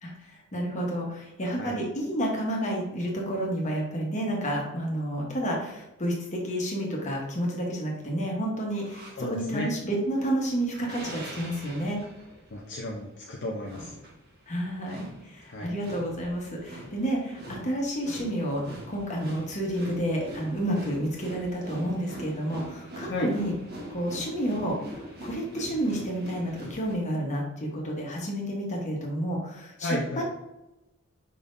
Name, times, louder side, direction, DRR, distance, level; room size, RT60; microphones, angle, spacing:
voice 1, 0.0-12.0 14.5-18.6 18.9-23.5 23.9-30.2, right 1 dB, 35° left, -2 dB, 1.2 m, -30 dB
sound 1, 8.7-9.2 10.0-27.0, right 1 dB, 50° right, 1.1 m, -43 dB
voice 2, 9.2-9.7 12.5-13.9 15.5-15.7 23.1-23.3 29.8-30.2, left 1 dB, 60° left, -2 dB, 0.7 m, -33 dB
5.3 x 3.6 x 2.7 m, 0.92 s
head